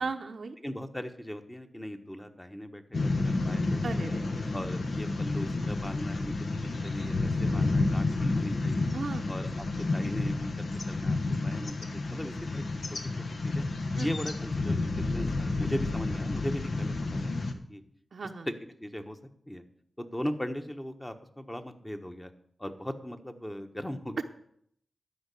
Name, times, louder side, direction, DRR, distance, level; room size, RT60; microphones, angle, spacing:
voice 1, 0.0-0.6 3.8-4.5 8.9-9.3 14.0-14.1 18.1-18.5 24.2-24.3, right 4 dB, 70° right, 4 dB, 0.7 m, -36 dB
voice 2, 0.6-4.2 4.5-6.3 6.8-8.9 9.3-12.6 12.9-13.0 13.4-13.6 14.0-17.8 18.5-18.6 18.8-19.2 19.5-19.6 20.0-22.3 22.6-24.2, equal, 15° left, 6 dB, 1.2 m, -39 dB
sound 1, 2.9-17.5, left 2 dB, 70° left, 1.1 m, -30 dB
12.5 x 5.3 x 8.4 m, 0.68 s
cardioid pair, 60°, 0 cm